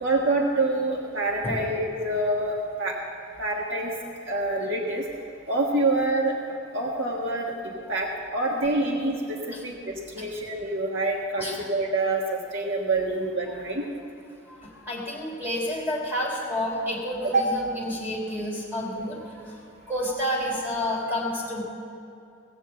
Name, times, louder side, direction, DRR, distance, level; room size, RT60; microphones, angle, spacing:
voice 1, 0.0-2.9 3.4-3.9 4.2-5.0 5.5-6.3 6.7-13.8 17.3-17.5, right 2 dB, 70° right, -2 dB, 1.5 m, -26 dB
voice 2, 14.5-19.6 19.9-21.6, left 1 dB, 10° right, -5 dB, 3.2 m, -30 dB
17.0 x 7.2 x 7.8 m, 2.7 s
head